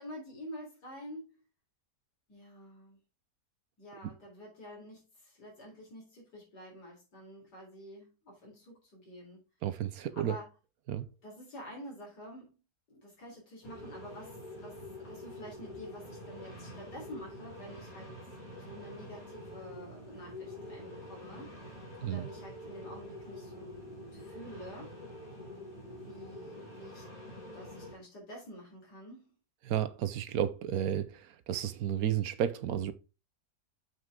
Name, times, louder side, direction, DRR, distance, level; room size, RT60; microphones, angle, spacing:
voice 1, 0.0-1.4 2.3-3.0 3.8-9.4 10.2-10.5 11.2-12.6 12.9-18.1 18.6-21.5 22.0-24.9 25.9-27.1 27.5-29.3, equal, 75° left, 4.5 m, -48 dB
voice 2, 9.6-10.3 10.9-11.1 22.0-22.3 29.6-32.9, right 10 dB, 65° right, 1.1 m, -32 dB
sound 1, 13.6-27.9, left 1 dB, 55° left, 3.5 m, -47 dB
7.5 x 6.1 x 3.7 m
omnidirectional pair, 1.8 m